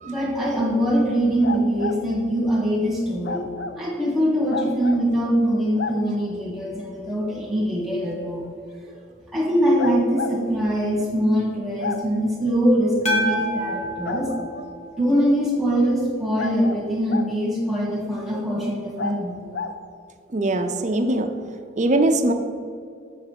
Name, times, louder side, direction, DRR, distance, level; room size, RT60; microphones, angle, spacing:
voice 1, 0.0-3.5 3.7-8.5 9.3-14.3 15.0-19.3, equal, ahead, -5 dB, 1.6 m, -23 dB
sound 1, 1.4-2.0 3.2-3.8 4.5-5.0 5.8-6.0 7.8-7.9 9.8-10.4 11.8-12.0 14.0-14.7 16.4-17.3 19.0-19.2 19.5-19.8, left 4 dB, 55° left, 0.5 m, -30 dB
sound 2, 13.0-15.4, equal, 35° left, 1.2 m, -28 dB
voice 2, 20.3-21.3 21.8-22.3, right 2 dB, 35° right, 6 dB, 0.5 m, -21 dB
7.0 x 4.8 x 6.6 m, 2.3 s
head